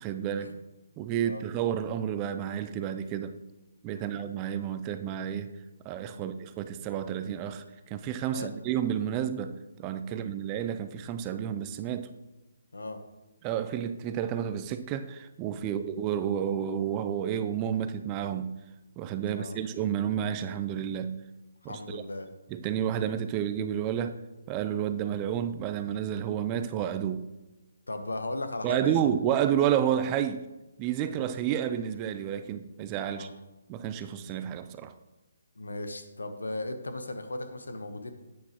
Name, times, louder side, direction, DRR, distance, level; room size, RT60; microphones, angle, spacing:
voice 1, 0.0-0.6 1.0-3.4 3.8-5.5 5.8-12.1 13.4-18.5 19.0-21.1 21.6-22.0 22.5-24.2 24.5-27.2 28.6-30.5 30.8-33.3 33.7-34.9, right 9 dB, 25° right, 0.5 m, -30 dB
voice 2, 19.3-19.6 21.6-22.3 22.8-22.9 27.9-29.1 31.0-31.2 33.1-33.3 35.6-38.1, left 2 dB, 90° left, 1.0 m, -37 dB
9.5 x 8.4 x 3.0 m
hypercardioid pair, 150°, 0 cm